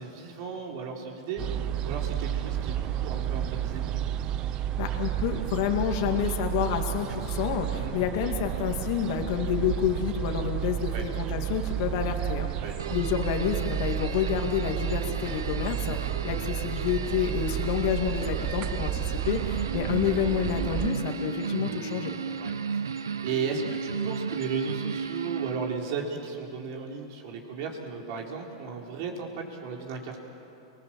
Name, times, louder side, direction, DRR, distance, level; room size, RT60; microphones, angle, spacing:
voice 1, 0.0-1.4 1.8-3.9 7.7-7.9 10.9-11.0 12.6-12.9 21.7-21.9 22.4-30.2, right 5 dB, 55° right, 1 dB, 4.4 m, -35 dB
sound 1, 1.4-20.9, right 11 dB, 40° right, 0.9 m, -31 dB
voice 2, 4.8-12.5 12.9-22.1, left 8 dB, 55° left, 4 dB, 2.4 m, -29 dB
sound 2, 12.8-26.0, right 6 dB, 90° right, 0.9 m, -35 dB
30.0 x 20.5 x 7.8 m, 2.9 s
hypercardioid pair, 105°, 2 cm